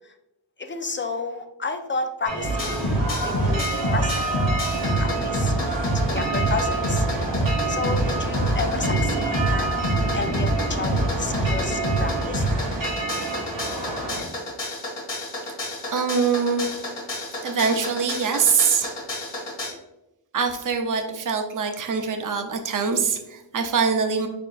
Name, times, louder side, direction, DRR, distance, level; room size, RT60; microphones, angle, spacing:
voice 1, 0.6-4.2 4.8-7.1 7.7-9.7 10.1-12.5, left 3 dB, 25° left, 6 dB, 0.5 m, -31 dB
sound 1, 2.2-14.2, right 2 dB, 90° right, 1.5 m, -28 dB
sound 2, 2.4-19.7, equal, 70° left, 1.5 m, -27 dB
voice 2, 15.8-16.8 17.4-19.0 20.3-24.3, right 5 dB, 45° right, 5 dB, 0.7 m, -23 dB
4.4 x 4.2 x 2.4 m, 0.91 s
cardioid pair, 60°, 44 cm